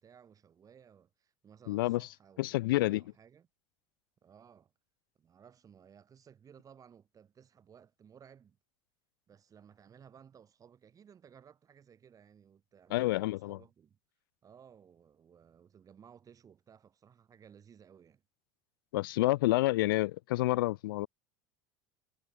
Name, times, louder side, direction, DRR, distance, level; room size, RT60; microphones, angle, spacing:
voice 1, 0.0-3.5 4.2-4.7 5.2-8.6 9.3-14.0 14.4-18.2, right 8 dB, 30° right, 4.9 m, -58 dB
voice 2, 1.7-2.1 2.4-3.0 12.9-13.6 18.9-21.1, left 18 dB, 90° left, 0.8 m, -29 dB
supercardioid pair, 110°, 11 cm